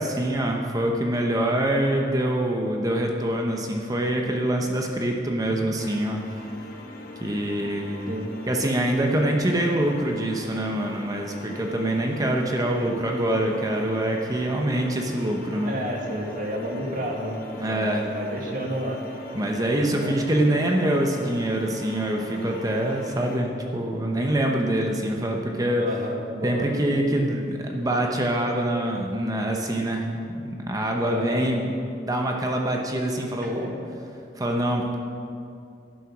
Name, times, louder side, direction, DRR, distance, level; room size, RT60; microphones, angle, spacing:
voice 1, 0.0-6.4 7.2-8.1 8.5-15.7 17.6-18.1 19.3-25.8 26.4-30.1 30.4-31.7 32.1-33.7 34.4-35.0, right 1 dB, 20° right, 1 dB, 0.9 m, -25 dB
sound 1, 5.8-23.4, left 1 dB, 55° left, 0.9 m, -42 dB
voice 2, 15.6-17.4 17.7-19.0 19.9-20.1 25.8-26.7 31.0-31.4 33.4-33.9, equal, 50° right, 0 dB, 1.8 m, -31 dB
11.5 x 8.9 x 6.0 m, 2.5 s
head